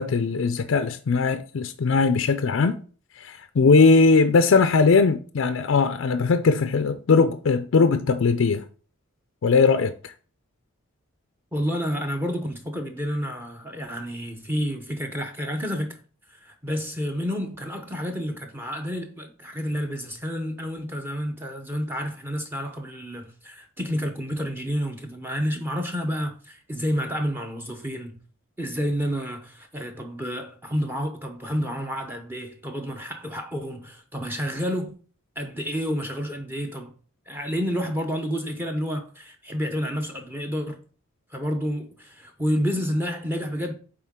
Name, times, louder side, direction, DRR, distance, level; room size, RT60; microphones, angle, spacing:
voice 1, 0.0-2.8 3.2-8.6 9.4-10.1, left 4 dB, 60° left, 0.4 m, -20 dB
voice 2, 11.5-16.0 16.3-28.2 28.6-35.0 35.4-36.9 37.3-40.8 41.3-43.7, equal, 10° right, 0.7 m, -29 dB
8.6 x 3.7 x 3.6 m
head